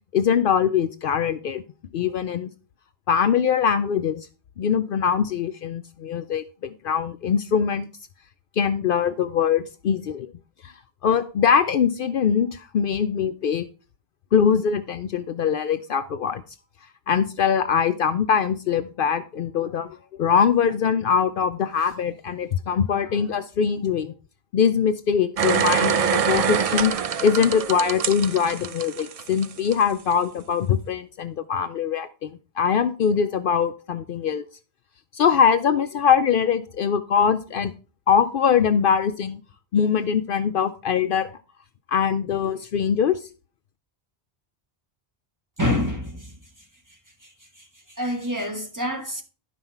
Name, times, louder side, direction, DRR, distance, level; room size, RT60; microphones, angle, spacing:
voice 1, 0.1-1.6 1.9-2.5 3.1-4.3 4.6-7.9 8.6-10.3 10.6-10.7 11.0-13.7 14.3-16.4 17.1-24.1 24.5-26.9 27.2-32.3 32.6-34.4 35.1-37.7 38.1-39.4 39.7-41.3 41.9-43.2, left 7 dB, 65° left, 0.7 m, -22 dB
sound 1, 25.4-29.7 30.1-30.2, right 7 dB, 45° right, 0.5 m, -24 dB
voice 2, 45.6-46.2 48.0-49.2, left 1 dB, 20° right, 1.3 m, -26 dB
11.5 x 5.6 x 4.5 m
omnidirectional pair, 1.0 m